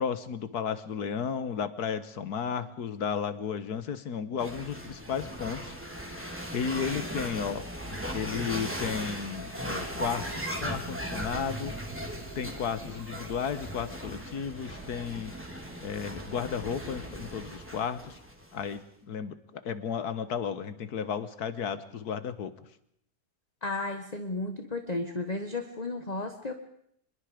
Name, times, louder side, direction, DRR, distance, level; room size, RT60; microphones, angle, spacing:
voice 1, 0.0-7.7 8.1-11.8 12.4-15.4 15.8-18.2 18.5-22.5, left 7 dB, 90° left, 13 dB, 1.8 m, -34 dB
sound 1, 4.4-18.7, right 1 dB, 10° right, 3.3 m, -38 dB
sound 2, 9.8-15.3, right 3 dB, 50° right, 4.4 m, -53 dB
voice 2, 23.6-26.5, left 2 dB, 25° left, 6 dB, 1.5 m, -33 dB
26.0 x 21.5 x 5.1 m, 0.71 s
omnidirectional pair, 1.6 m